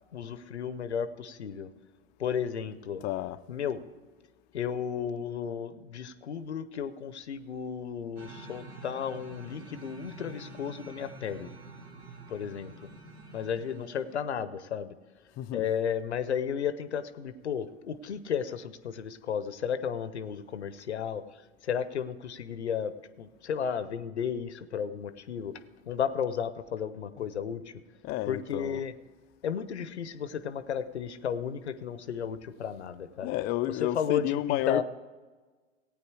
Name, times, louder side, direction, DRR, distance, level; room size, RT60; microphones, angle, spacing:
voice 1, 0.1-1.7 2.2-3.0 3.5-3.8 4.5-11.5 12.3-12.7 13.3-14.9 15.5-21.2 21.6-25.6 25.9-27.6 28.3-28.9 29.4-33.3 33.8-34.8, left 7 dB, 90° left, 0.7 m, -33 dB
voice 2, 3.0-3.4 15.4-15.7 28.0-28.8 33.2-34.8, left 15 dB, 30° left, 0.4 m, -31 dB
sound 1, 8.2-14.4, right 2 dB, 50° right, 2.0 m, -47 dB
15.0 x 9.0 x 4.7 m
hypercardioid pair, 95°, 33 cm